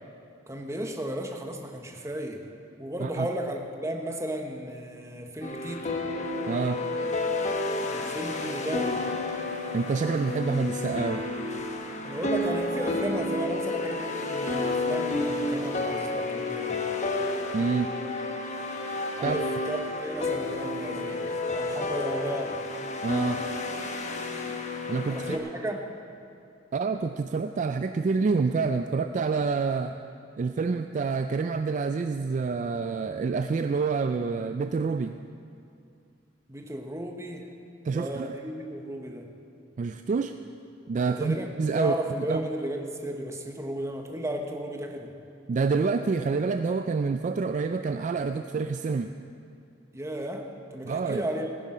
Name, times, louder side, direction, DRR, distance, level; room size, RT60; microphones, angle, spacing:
voice 1, 0.5-2.4 2.8-6.0 7.9-9.0 12.0-16.9 19.2-22.6 25.1-25.9 36.5-37.5 37.9-39.3 41.0-41.5 41.7-45.1 49.9-51.5, right 1 dB, 15° right, 3 dB, 1.0 m, -34 dB
sound 1, 5.4-25.4, left 2 dB, 40° left, 1.0 m, -31 dB
voice 2, 6.5-6.8 9.7-11.2 17.5-17.9 19.2-19.4 23.0-23.4 24.9-25.4 26.7-30.0 30.4-35.2 37.8-38.3 39.8-40.3 40.9-42.5 45.5-49.1 50.8-51.3, right 4 dB, 40° right, 8 dB, 0.3 m, -27 dB
16.0 x 10.0 x 5.0 m, 2.4 s
head